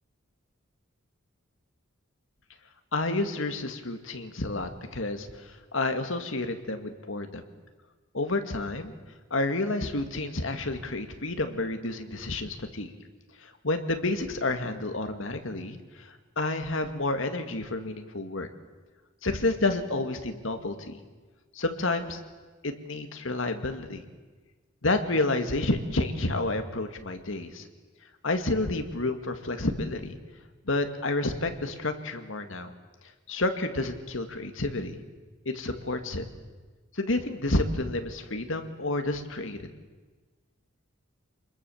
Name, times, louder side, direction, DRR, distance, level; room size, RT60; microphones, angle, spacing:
voice 1, 2.9-7.4 8.1-8.9 9.3-12.9 13.4-18.5 19.2-21.0 21.5-22.2 22.6-24.0 24.8-27.7 28.2-30.2 30.7-32.7 33.3-35.0 35.5-36.3 36.9-39.6, left 2 dB, 70° left, 7 dB, 2.1 m, -30 dB
26.5 x 21.0 x 7.2 m, 1.3 s
head